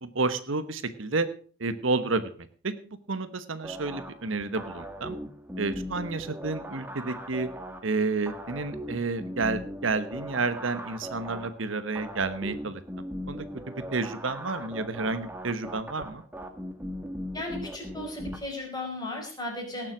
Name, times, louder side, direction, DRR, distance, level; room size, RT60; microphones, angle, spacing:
voice 1, 0.0-1.3 1.6-2.2 3.1-5.1 5.6-7.5 7.8-12.8 13.3-13.4 13.9-16.2, right 3 dB, 75° right, 11 dB, 1.2 m, -30 dB
sound 1, 3.6-18.4, equal, 10° right, 1.5 m, -39 dB
voice 2, 17.3-19.9, left 2 dB, 20° left, 0 dB, 5.2 m, -36 dB
18.0 x 7.5 x 6.0 m, 0.43 s
head